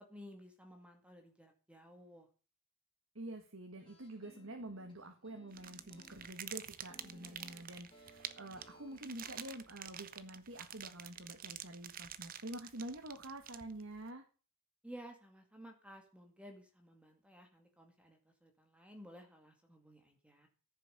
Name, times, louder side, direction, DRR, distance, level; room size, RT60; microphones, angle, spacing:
voice 1, 0.1-2.3 14.8-20.5, equal, 5° right, 4 dB, 2.0 m, -55 dB
voice 2, 3.2-14.2, right 1 dB, 70° right, 4 dB, 1.8 m, -47 dB
sound 1, 3.8-9.6, equal, 25° left, 3.1 m, -62 dB
sound 2, 5.5-14.0, right 10 dB, 40° right, 0.8 m, -48 dB
14.5 x 6.9 x 6.9 m, 0.36 s
head